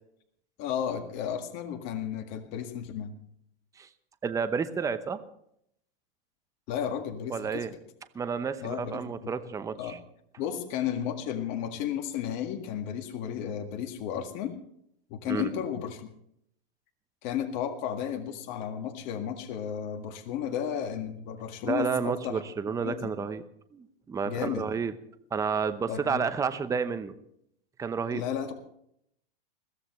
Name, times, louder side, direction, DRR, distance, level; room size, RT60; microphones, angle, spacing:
voice 1, 0.6-3.1 6.7-7.7 8.6-9.3 9.8-10.0 10.4-14.6 15.1-16.1 17.2-22.4 22.8-23.0 24.3-24.6 25.9-26.2 28.1-28.5, left 9 dB, 40° left, 5 dB, 1.9 m, -33 dB
voice 2, 4.2-5.2 7.3-7.7 8.1-10.0 15.3-15.5 21.6-23.4 23.7-24.9 25.3-27.1 27.8-28.2, right 6 dB, 10° right, 11 dB, 0.8 m, -30 dB
22.0 x 15.5 x 3.2 m, 0.72 s
hypercardioid pair, 130°, 29 cm